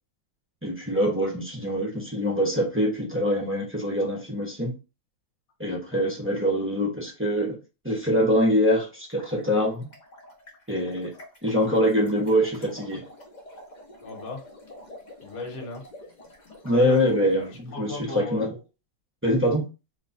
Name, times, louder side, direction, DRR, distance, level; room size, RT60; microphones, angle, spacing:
voice 1, 0.6-4.7 5.6-7.6 7.8-9.9 10.7-11.1 11.4-13.1 16.6-18.6 19.2-19.6, equal, 15° right, 0.4 m, -24 dB
sound 1, 9.0-17.5, left 1 dB, 40° left, 0.6 m, -47 dB
voice 2, 14.0-14.4 15.2-15.8 16.7-17.0 17.7-18.5, left 2 dB, 55° left, 1.5 m, -35 dB
3.1 x 2.3 x 3.9 m
omnidirectional pair, 1.9 m